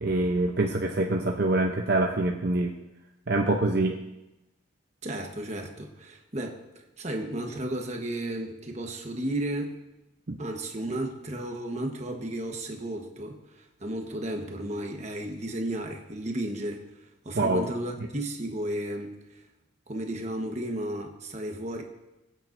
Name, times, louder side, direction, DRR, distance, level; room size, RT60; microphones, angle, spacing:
voice 1, 0.0-2.7 3.3-4.0 10.3-10.4 17.4-17.6, right 2 dB, 50° right, 2 dB, 0.7 m, -25 dB
voice 2, 5.0-6.6 7.0-9.8 10.4-16.8 17.2-19.4 19.9-21.8, right 1 dB, 35° right, 3 dB, 1.2 m, -33 dB
19.5 x 9.1 x 2.6 m, 0.95 s
head